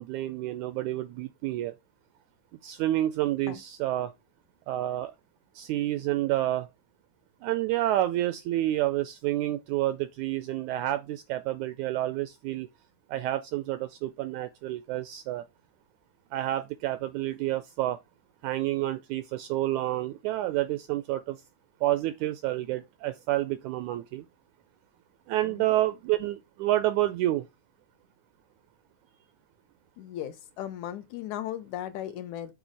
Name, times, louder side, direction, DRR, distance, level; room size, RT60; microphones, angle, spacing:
voice 1, 0.0-1.7 2.6-4.1 4.7-5.1 5.5-6.7 7.4-12.7 13.1-15.4 16.3-18.0 18.4-21.4 21.8-24.2 25.3-27.4, right 14 dB, 80° right, 1.7 m, -29 dB
voice 2, 30.0-32.5, left 11 dB, 75° left, 1.9 m, -37 dB
7.3 x 3.9 x 6.3 m
omnidirectional pair, 3.9 m